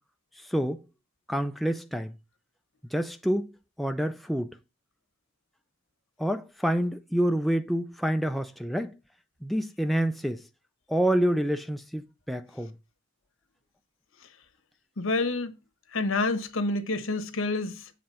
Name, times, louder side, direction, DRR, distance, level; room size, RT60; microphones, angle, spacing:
voice 1, 0.4-0.8 1.3-2.1 2.9-3.5 3.8-4.6 6.2-8.9 9.4-10.4 10.9-12.7, right 1 dB, ahead, 0.3 m, -27 dB
voice 2, 15.0-15.5 15.9-17.9, left 3 dB, 70° left, 1.2 m, -28 dB
7.5 x 3.9 x 5.7 m
head